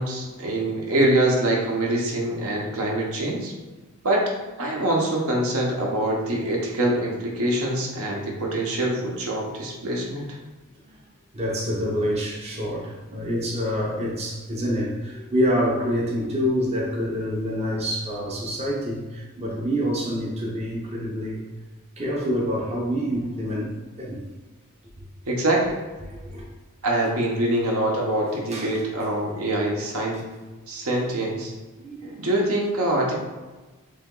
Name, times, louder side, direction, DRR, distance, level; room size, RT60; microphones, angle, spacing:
voice 1, 0.0-3.5 4.0-4.2 4.6-10.4 25.2-25.8 26.8-30.2 30.7-31.5 32.2-33.1, right 1 dB, 70° right, -2 dB, 0.9 m, -24 dB
voice 2, 11.3-21.4 22.0-24.2 26.0-26.5 28.5-28.7 31.8-32.3, equal, 30° right, -4 dB, 0.7 m, -27 dB
3.4 x 2.9 x 3.7 m, 1.2 s
head